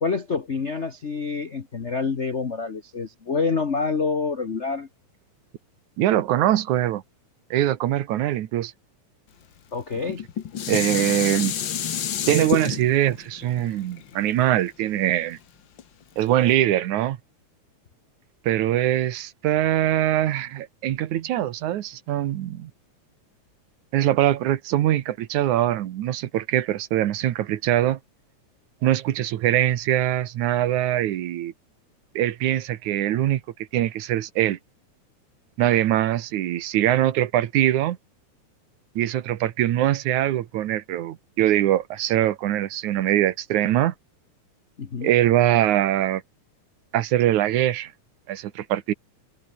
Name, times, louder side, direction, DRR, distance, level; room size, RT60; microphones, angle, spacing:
voice 1, 0.0-4.9 9.7-10.2 44.8-45.1, left 4 dB, 85° left, 0.6 m, -27 dB
voice 2, 6.0-7.0 7.5-8.7 10.7-11.5 12.3-15.4 16.2-17.2 18.4-22.7 23.9-28.0 28.8-31.5 32.2-33.4 33.7-34.6 35.6-38.0 39.0-43.9 45.0-46.2 46.9-47.9 48.3-48.9, right 13 dB, 80° right, 2.6 m, -22 dB
Dishes pots and pans, 10.0-15.2 15.8-15.9, left 9 dB, 50° left, 1.6 m, -29 dB
omnidirectional pair, 3.4 m